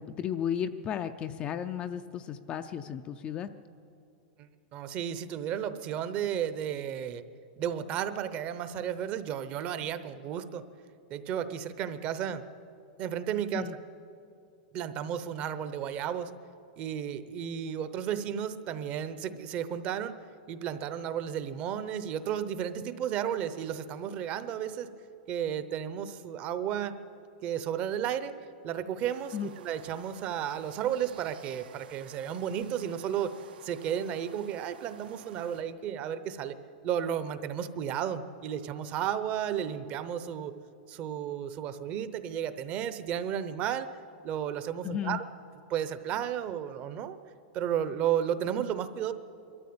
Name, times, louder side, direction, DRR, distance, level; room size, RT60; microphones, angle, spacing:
voice 1, 0.0-3.5 13.5-13.8 29.3-29.5 44.8-45.2, left 9 dB, 20° left, 8 dB, 0.4 m, -34 dB
voice 2, 4.4-7.2 7.6-10.6 11.1-12.4 13.0-13.7 14.7-16.3 16.8-20.2 20.5-24.9 25.3-26.9 27.4-28.3 28.6-33.4 33.6-36.5 36.8-40.5 40.9-43.9 44.2-45.2 45.7-47.2 47.5-49.1, right 9 dB, 30° right, 12 dB, 0.8 m, -33 dB
sound 1, 29.0-35.6, right 8 dB, 90° right, 1.4 m, -53 dB
22.5 x 13.5 x 8.6 m, 2.5 s
supercardioid pair, 165°, 5 cm